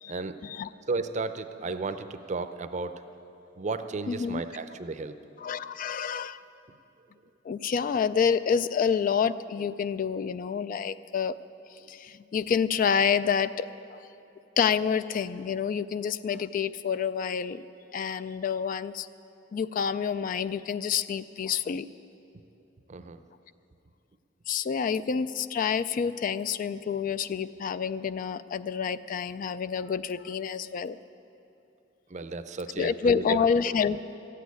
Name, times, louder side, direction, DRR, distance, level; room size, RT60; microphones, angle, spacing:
voice 1, 0.9-3.0 3.6-5.2 22.9-23.2 32.1-33.8, right 3 dB, 40° right, 10 dB, 0.6 m, -33 dB
voice 2, 4.1-4.4 5.4-6.4 7.4-11.4 11.9-14.0 14.6-17.6 17.9-19.1 19.5-21.9 24.5-31.0 32.8-34.0, left 6 dB, 45° left, 15 dB, 0.3 m, -28 dB
13.5 x 8.5 x 9.4 m, 2.8 s
head